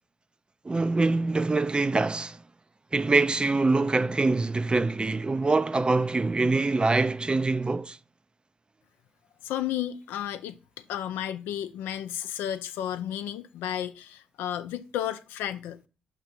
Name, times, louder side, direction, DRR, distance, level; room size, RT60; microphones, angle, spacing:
voice 1, 0.6-2.4 2.9-8.0, right 3 dB, 25° right, 0.5 m, -24 dB
voice 2, 9.4-10.5 10.9-15.9, left 11 dB, 80° left, 0.4 m, -32 dB
5.6 x 3.6 x 5.8 m
hypercardioid pair, 45°, 4 cm